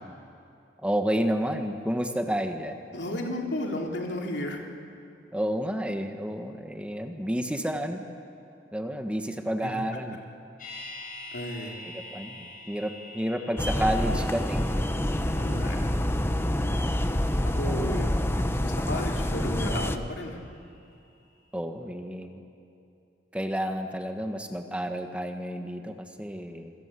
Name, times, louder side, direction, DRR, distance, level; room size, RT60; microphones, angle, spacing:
voice 1, 0.8-2.8 5.3-8.0 8.7-10.2 11.9-14.6 17.4-18.4 21.5-22.4 23.3-26.7, equal, 5° right, 5 dB, 1.4 m, -30 dB
voice 2, 2.9-4.6 9.6-9.7 11.3-11.8 15.3-15.9 17.4-18.1 18.4-20.4, left 1 dB, 75° left, 0 dB, 3.5 m, -33 dB
sound 1, 10.6-20.6 20.9-21.0, left 2 dB, 50° left, 7.6 m, -47 dB
sound 2, 13.6-20.0, left 1 dB, 15° left, 1.1 m, -27 dB
27.0 x 24.0 x 8.4 m, 2.6 s
head